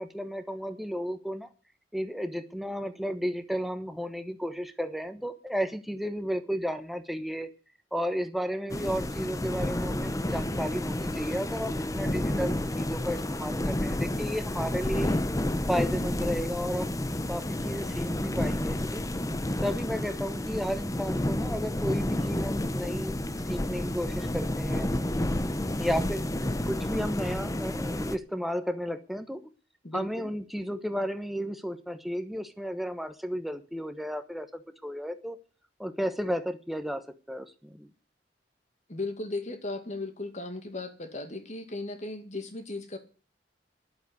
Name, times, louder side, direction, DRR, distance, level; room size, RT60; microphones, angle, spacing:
voice 1, 0.0-1.5 1.9-7.5 7.9-15.2 15.7-17.0 17.3-19.0 19.6-23.2 23.5-24.9 25.8-26.3 26.6-29.4 29.9-35.4 35.8-37.9, equal, ahead, 9 dB, 1.2 m, -33 dB
sound 1, 8.7-28.2, left 1 dB, 20° left, 0.8 m, -30 dB
voice 2, 29.8-30.3 38.9-43.0, left 2 dB, 45° left, 8 dB, 2.2 m, -36 dB
11.0 x 7.8 x 9.6 m, 0.37 s
head